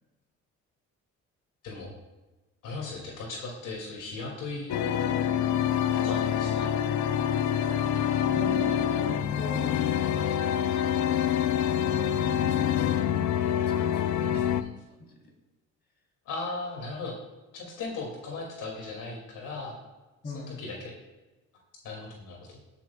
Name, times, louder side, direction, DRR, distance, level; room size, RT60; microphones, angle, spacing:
voice 1, 1.6-1.9 2.6-4.8 5.9-6.7 14.2-14.7 16.3-17.1 17.5-19.8 20.3-20.9 21.8-22.6, left 3 dB, 85° left, -1 dB, 2.5 m, -37 dB
sound 1, 4.7-14.6, left 9 dB, 70° left, 0.6 m, -26 dB
voice 2, 8.3-10.2 11.7-14.4 15.0-15.3 16.9-17.1 20.2-20.6, left 2 dB, 35° left, 0 dB, 3.4 m, -41 dB
18.0 x 8.3 x 2.3 m, 1.1 s
cardioid pair, 90°, 30 cm